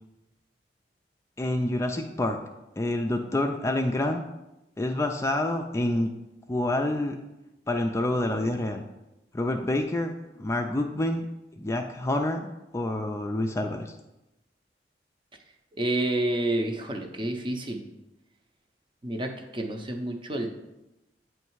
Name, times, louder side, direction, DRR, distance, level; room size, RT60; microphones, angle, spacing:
voice 1, 1.4-2.4 2.8-4.2 4.8-6.1 6.5-7.2 7.7-8.8 9.3-11.3 11.6-13.9, left 1 dB, 15° left, 4 dB, 0.3 m, -27 dB
voice 2, 15.8-17.9 19.0-20.5, right 1 dB, 30° right, 4 dB, 0.6 m, -29 dB
8.2 x 3.2 x 4.6 m, 0.95 s
head